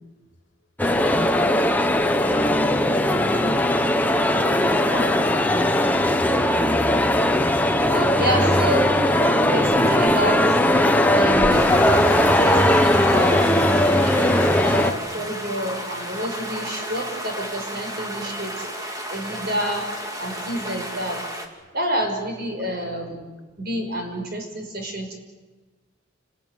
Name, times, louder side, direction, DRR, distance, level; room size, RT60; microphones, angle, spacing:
sound 1, 0.8-14.9, left 1 dB, 10° left, 1.2 m, -19 dB
voice 1, 4.3-5.7, left 3 dB, 65° left, 5 dB, 2.6 m, -38 dB
voice 2, 7.8-10.6 11.1-11.9 12.4-18.7 19.1-19.9 20.2-21.3 21.7-23.2 23.6-25.2, right 1 dB, 50° right, 4 dB, 6.1 m, -29 dB
sound 2, 11.5-21.5, equal, 20° right, 2.9 m, -33 dB
29.5 x 21.0 x 9.6 m, 1.3 s
head